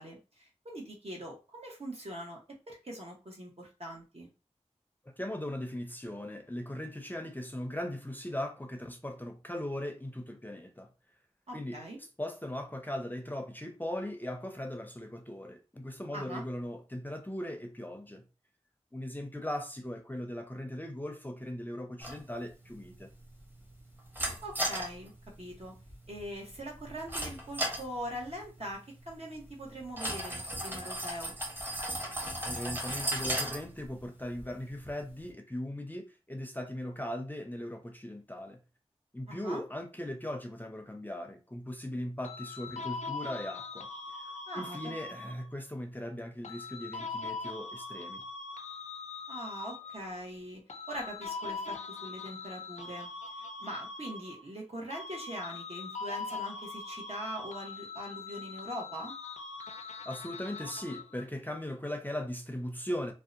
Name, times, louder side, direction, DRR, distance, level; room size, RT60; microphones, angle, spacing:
voice 1, 0.0-4.3 11.5-12.0 16.1-16.4 24.4-25.1 25.4-25.7 26.1-28.8 29.1-31.4 39.3-39.6 44.5-44.9 49.3-50.6 50.9-53.1 53.4-59.1, equal, 60° right, 0.9 m, -42 dB
voice 2, 5.2-10.9 11.5-11.8 12.2-18.2 18.9-23.1 32.4-38.6 39.1-43.9 44.5-48.2 60.1-63.1, left 1 dB, 15° left, 0.5 m, -39 dB
sound 1, 22.0-35.3, right 1 dB, 15° right, 0.9 m, -38 dB
sound 2, 42.2-45.6 46.4-50.2 50.7-54.6 54.9-61.2, left 4 dB, 80° left, 0.4 m, -42 dB
2.7 x 2.1 x 2.5 m
wide cardioid pair, 45°, 12 cm